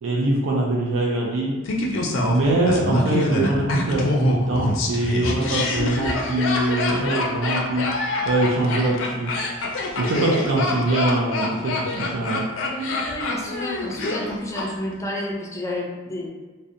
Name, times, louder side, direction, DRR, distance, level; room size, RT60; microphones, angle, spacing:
voice 1, 0.0-1.6 2.2-9.3 10.0-12.4, right 2 dB, 85° right, -2 dB, 0.4 m, -23 dB
Laughter, 1.7-14.7 14.9-15.0, left 2 dB, 85° left, 0.4 m, -25 dB
voice 2, 12.7-16.3, left 1 dB, 15° left, -1 dB, 0.4 m, -30 dB
2.6 x 2.1 x 2.5 m, 1.3 s
head